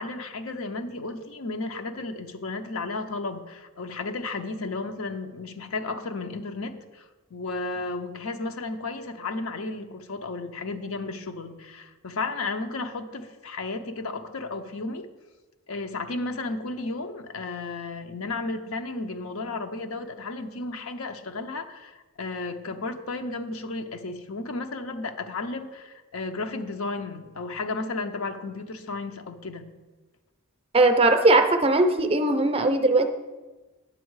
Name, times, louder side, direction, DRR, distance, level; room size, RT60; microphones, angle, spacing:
voice 1, 0.0-7.1 7.3-15.1 15.7-29.7, left 3 dB, 75° left, 7 dB, 0.8 m, -33 dB
voice 2, 30.7-33.1, right 2 dB, 25° right, 7 dB, 0.6 m, -19 dB
9.1 x 7.3 x 4.7 m, 1.2 s
head